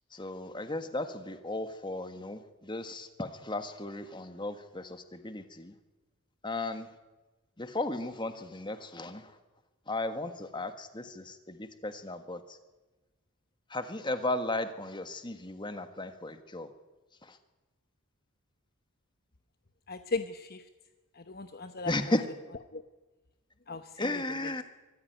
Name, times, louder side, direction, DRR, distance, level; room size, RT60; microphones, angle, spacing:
voice 1, 0.1-5.7 6.4-6.9 7.6-9.4 9.9-12.6 13.7-16.7 17.2-17.4 21.8-22.2 24.0-24.6, left 2 dB, 20° left, 9 dB, 1.6 m, -35 dB
voice 2, 19.9-20.7 21.1-21.9 22.7-22.8 23.7-24.1, left 3 dB, 45° left, 9 dB, 0.9 m, -37 dB
24.0 x 15.0 x 9.4 m, 1.2 s
head